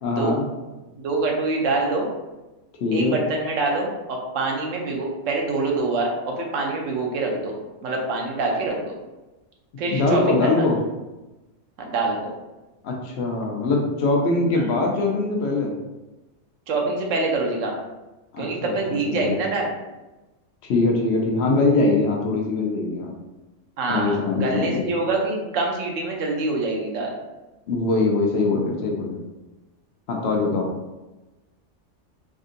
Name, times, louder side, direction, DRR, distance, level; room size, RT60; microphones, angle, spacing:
voice 1, 0.0-0.5 2.8-3.2 9.9-10.8 12.8-15.7 18.3-19.3 20.6-23.1 23.9-24.8 27.7-29.2 30.1-30.7, left 3 dB, 65° left, 0 dB, 0.8 m, -22 dB
voice 2, 1.0-2.1 2.9-7.6 7.8-9.0 9.8-10.7 11.8-12.3 16.7-17.8 18.4-19.7 23.8-27.1, right 3 dB, 90° right, 0 dB, 1.1 m, -25 dB
3.6 x 2.6 x 2.5 m, 1.1 s
omnidirectional pair, 1.3 m